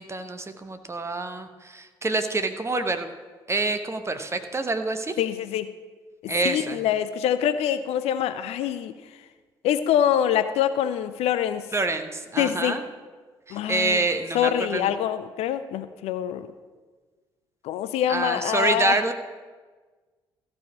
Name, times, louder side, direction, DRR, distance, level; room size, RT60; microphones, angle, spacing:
voice 1, 0.0-3.1 3.5-5.2 6.3-6.8 11.7-12.8 13.5-14.9 18.1-19.1, right 3 dB, 20° right, 8 dB, 1.0 m, -27 dB
voice 2, 5.2-5.7 6.2-8.9 9.6-11.7 12.4-12.8 13.5-14.1 14.3-16.5 17.6-19.0, left 10 dB, 55° left, 12 dB, 0.5 m, -25 dB
14.5 x 4.9 x 7.2 m, 1.4 s
figure-of-eight pair, 45°, 12 cm